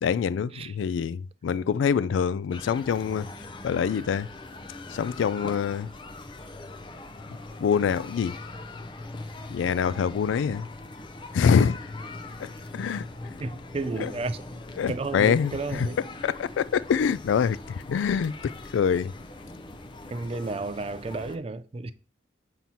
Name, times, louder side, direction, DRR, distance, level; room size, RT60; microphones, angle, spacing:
voice 1, 0.0-3.3 3.6-4.3 4.9-5.9 7.6-8.4 9.5-10.7 11.3-11.8 12.4-12.5 12.7-13.1 14.0-14.1 14.8-15.9 16.2-17.6 17.9-19.1, left 7 dB, 90° left, 0.3 m, -25 dB
sound 1, 2.5-21.4, left 2 dB, 25° left, 0.5 m, -41 dB
voice 2, 13.4-14.4 14.9-16.0 20.1-21.9, right 3 dB, 30° right, 0.4 m, -32 dB
7.4 x 2.9 x 5.4 m
head